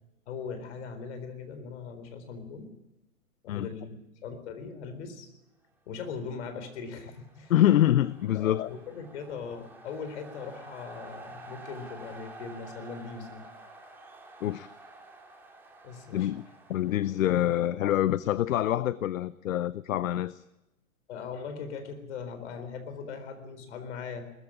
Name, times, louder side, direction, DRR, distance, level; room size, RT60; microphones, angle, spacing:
voice 1, 0.3-2.7 3.4-4.0 4.2-5.3 5.9-7.5 8.3-13.5 15.8-16.3 17.5-17.7 21.1-24.3, left 5 dB, 50° left, 4.2 m, -40 dB
sound 1, 6.3-18.3, right 2 dB, 5° right, 2.4 m, -50 dB
voice 2, 7.5-8.7 14.4-14.7 16.1-16.4 16.7-20.4, left 12 dB, 70° left, 0.7 m, -25 dB
20.5 x 14.5 x 10.0 m
hypercardioid pair, 145°, 42 cm